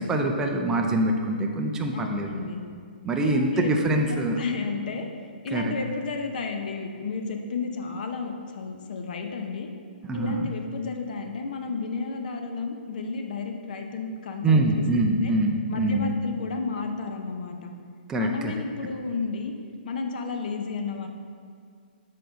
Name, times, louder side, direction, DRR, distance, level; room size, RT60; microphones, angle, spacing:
voice 1, 0.0-2.4 3.0-4.4 5.5-5.8 10.1-10.5 14.4-16.1 18.1-18.5, right 2 dB, 10° right, 2 dB, 0.4 m, -24 dB
voice 2, 1.9-2.6 3.2-5.1 5.4-9.7 10.1-15.3 15.7-17.7 18.2-19.5 19.8-21.1, left 4 dB, 55° left, 4 dB, 0.7 m, -32 dB
6.7 x 3.8 x 5.1 m, 2.2 s
hypercardioid pair, 150°, 5 cm